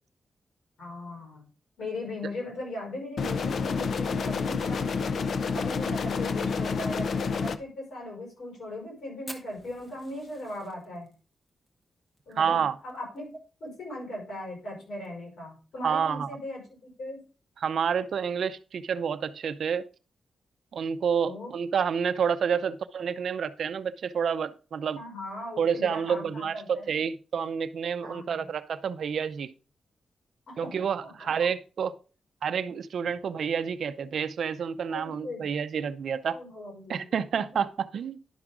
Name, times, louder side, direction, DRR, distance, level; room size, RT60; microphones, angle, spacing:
voice 1, 0.8-1.4 1.8-4.8 5.5-11.1 12.3-13.3 13.6-17.2 21.2-21.6 24.9-27.0 28.0-28.5 30.5-30.7 31.0-31.3 34.9-35.4 36.2-37.6, left 1 dB, 80° left, 5.8 m, -39 dB
sound 1, 3.2-7.6, left 5 dB, 60° left, 0.6 m, -29 dB
Fire, 9.3-13.8 14.0-14.1 14.4-14.5 14.9-15.3 15.8-15.9 16.9-17.1, equal, 15° left, 1.2 m, -48 dB
voice 2, 12.4-12.8 15.8-16.3 17.6-19.8 20.7-25.0 25.6-29.5 30.6-31.9 32.4-36.4 36.9-38.2, right 7 dB, 65° right, 0.5 m, -29 dB
11.0 x 6.0 x 3.7 m
wide cardioid pair, 160°, 0 cm